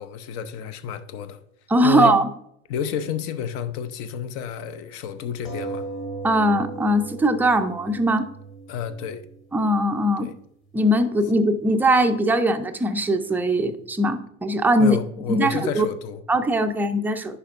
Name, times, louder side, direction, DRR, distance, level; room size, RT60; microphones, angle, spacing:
voice 1, 0.0-1.4 1.8-2.2 2.7-5.9 8.7-9.3 10.2-10.3 14.8-16.2, left 8 dB, 55° left, 0.7 m, -30 dB
voice 2, 1.7-2.3 6.2-8.3 9.5-10.3 10.7-15.0 15.3-15.9 16.3-17.4, right 1 dB, 5° right, 0.4 m, -20 dB
sound 1, 5.4-10.5 11.2-11.3 11.6-11.7, right 3 dB, 30° left, 1.7 m, -37 dB
9.8 x 5.6 x 2.5 m
figure-of-eight pair, 75°, 41 cm